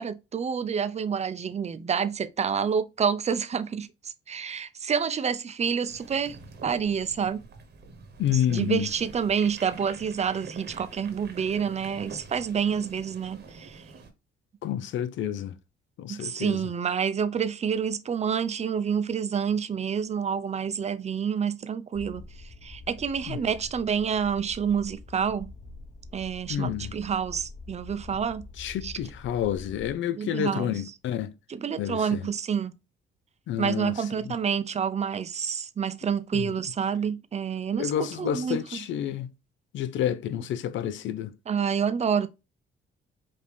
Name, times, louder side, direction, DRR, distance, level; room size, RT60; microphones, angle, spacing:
voice 1, 0.0-6.4 6.6-7.4 8.5-13.8 16.1-22.2 22.6-25.5 26.1-28.4 28.8-28.9 30.2-30.7 31.5-32.7 33.6-38.8 41.5-42.3, right 7 dB, 35° right, 0.5 m, -28 dB
sound 1, 5.9-14.1, right 4 dB, 55° right, 1.2 m, -46 dB
voice 2, 8.2-8.9 14.6-15.5 16.0-16.6 23.3-23.4 26.5-26.9 28.6-31.3 31.8-32.3 33.5-34.4 36.3-36.5 37.8-39.3 39.7-41.3, left 10 dB, 70° left, 0.5 m, -29 dB
sound 2, 21.9-29.9, left 2 dB, 35° left, 1.2 m, -45 dB
5.1 x 2.8 x 3.3 m
cardioid pair, 90°, 20 cm